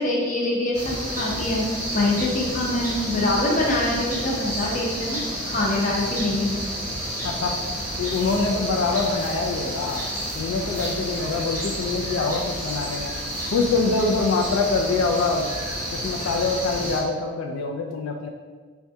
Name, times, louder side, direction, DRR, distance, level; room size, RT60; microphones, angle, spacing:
voice 1, 0.0-1.7 1.9-6.5, left 2 dB, 40° left, -3 dB, 0.6 m, -24 dB
sound 1, 0.7-17.0, equal, 15° right, 0.8 m, -30 dB
voice 2, 7.2-7.5 8.0-10.1 10.4-13.2 13.5-15.5 15.9-18.3, left 3 dB, 85° left, 1 dB, 0.3 m, -24 dB
4.4 x 2.3 x 2.6 m, 1.4 s
head